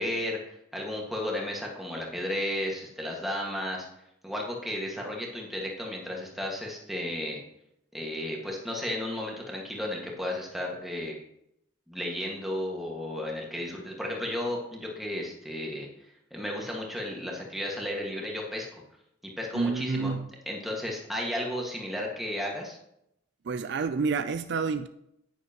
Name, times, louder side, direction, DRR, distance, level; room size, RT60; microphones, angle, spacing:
voice 1, 0.0-3.9 4.2-7.4 7.9-11.1 11.9-15.9 16.3-18.8 19.4-20.1 20.4-22.8, left 1 dB, ahead, -2 dB, 1.7 m, -33 dB
voice 2, 19.5-20.3 23.5-24.9, right 5 dB, 55° right, 9 dB, 0.4 m, -29 dB
10.0 x 9.5 x 2.9 m, 0.79 s
head